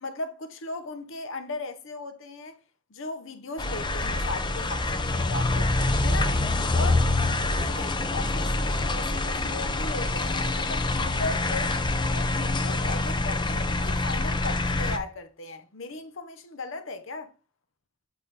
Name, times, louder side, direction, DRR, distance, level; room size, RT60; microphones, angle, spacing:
voice 1, 0.0-2.6 2.9-5.7 6.0-6.5 6.7-7.1 7.4-11.8 12.1-17.3, left 2 dB, 65° left, 0.8 m, -37 dB
sound 1, 3.6-15.0, left 2 dB, 20° left, 0.6 m, -26 dB
7.8 x 4.1 x 3.2 m
head